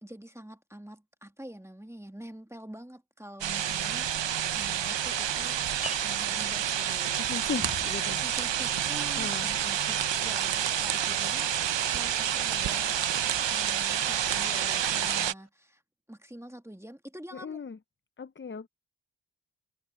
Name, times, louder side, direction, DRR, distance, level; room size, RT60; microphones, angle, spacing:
voice 1, 0.0-5.6 6.0-7.2 7.8-7.9 8.2-13.1 13.5-15.8 16.1-17.6, equal, 5° right, 1.7 m, -46 dB
sound 1, 3.4-15.3, right 9 dB, 80° right, 0.7 m, -29 dB
sound 2, 4.2-15.5, left 1 dB, 35° right, 3.8 m, -52 dB
sound 3, 4.7-15.3, left 4 dB, 70° left, 6.7 m, -61 dB
voice 2, 7.2-8.2 9.2-9.5 17.4-17.8 18.2-18.7, left 5 dB, 30° left, 0.5 m, -36 dB
wide cardioid pair, 70°, 43 cm